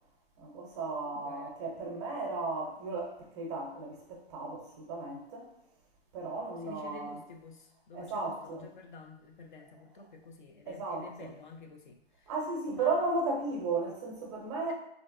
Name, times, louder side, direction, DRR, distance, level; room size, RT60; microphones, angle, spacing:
voice 1, 0.4-5.5 6.1-7.2 7.9-8.7 10.7-11.3 12.3-14.7, right 3 dB, 30° right, -1 dB, 0.6 m, -35 dB
voice 2, 1.0-1.5 6.6-12.3 12.7-13.1, left 3 dB, 50° left, 3 dB, 0.4 m, -50 dB
3.1 x 2.5 x 2.5 m, 0.83 s
hypercardioid pair, 145°, 32 cm